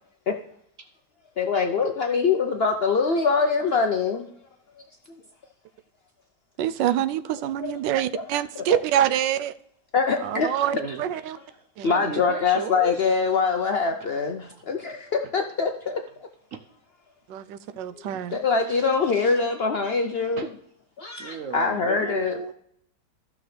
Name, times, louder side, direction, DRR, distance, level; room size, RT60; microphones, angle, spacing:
voice 1, 1.4-4.3 7.6-7.8 8.1-8.2 8.6-8.8 9.9-10.5 11.8-16.0 18.0-18.1 18.3-20.5 21.0-22.3, left 5 dB, 85° left, 5 dB, 0.5 m, -24 dB
voice 2, 6.6-9.5 10.2-11.4 11.8-11.9 17.3-18.4, right 11 dB, 85° right, 12 dB, 1.2 m, -26 dB
voice 3, 10.6-11.1 11.5-13.2 14.4-14.6 15.2-15.3 16.5-16.6 17.7-17.8 18.6-19.4 19.9-20.5 21.2-22.5, right 6 dB, 65° right, 6 dB, 0.8 m, -37 dB
14.5 x 6.1 x 3.2 m, 0.69 s
omnidirectional pair, 1.9 m